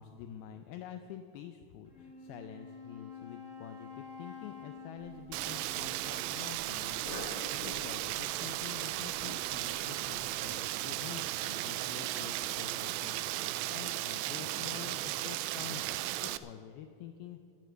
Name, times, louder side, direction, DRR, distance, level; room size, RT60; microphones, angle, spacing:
voice 1, 0.0-17.4, left 10 dB, 85° left, 8 dB, 2.2 m, -48 dB
Wind instrument woodwind instrument, 1.9-6.8, left 4 dB, 35° left, 1.2 m, -49 dB
Cough, 5.0-10.4, left 2 dB, 55° left, 3.2 m, -50 dB
Rain, 5.3-16.4, right 15 dB, 85° right, 2.7 m, -36 dB
12.0 x 9.9 x 7.8 m, 2.4 s
omnidirectional pair, 5.0 m